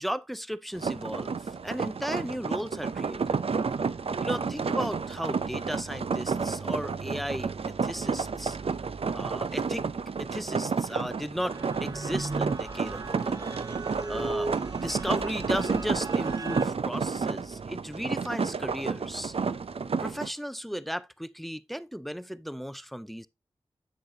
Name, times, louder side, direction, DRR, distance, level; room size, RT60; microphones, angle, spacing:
voice 1, 0.0-3.4 4.2-8.6 9.1-9.9 10.2-13.6 14.1-19.3 20.0-23.3, equal, ahead, 0.5 m, -35 dB
sound 1, 0.7-20.3, right 5 dB, 65° right, 0.5 m, -31 dB
sound 2, 11.5-16.7, right 2 dB, 35° right, 1.0 m, -36 dB
8.0 x 6.5 x 2.7 m
cardioid pair, 40°, 11 cm